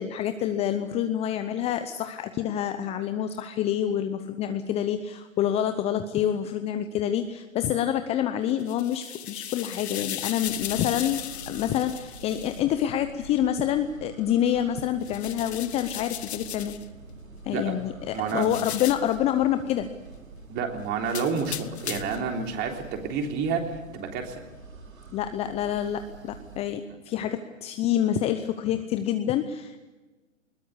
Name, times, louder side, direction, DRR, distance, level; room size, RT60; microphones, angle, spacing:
voice 1, 0.0-11.2 11.5-16.7 17.4-19.9 25.1-29.8, left 10 dB, 15° left, 9 dB, 0.7 m, -27 dB
sound 1, 8.5-12.6 15.0-16.9 18.3-19.2 21.1-22.3, left 11 dB, 55° left, 1.3 m, -37 dB
sound 2, 10.3-26.6, right 3 dB, 85° right, 4.7 m, -46 dB
voice 2, 18.1-18.6 20.5-24.4, right 5 dB, 25° right, 3 dB, 3.5 m, -29 dB
21.0 x 20.0 x 8.3 m, 1.2 s
figure-of-eight pair, 125°, 39 cm